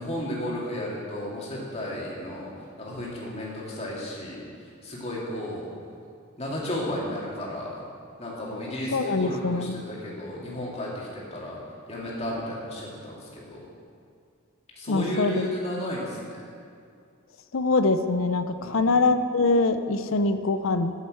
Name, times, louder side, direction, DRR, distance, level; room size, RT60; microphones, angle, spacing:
voice 1, 0.0-2.5 2.8-4.5 4.8-5.7 6.4-7.8 8.2-11.6 11.9-13.6 14.8-16.2 18.6-18.8, left 1 dB, 30° left, -5 dB, 2.3 m, -33 dB
voice 2, 8.9-9.8 14.9-15.4 17.5-20.9, left 3 dB, 70° left, 9 dB, 0.6 m, -23 dB
8.1 x 7.5 x 7.7 m, 2.4 s
head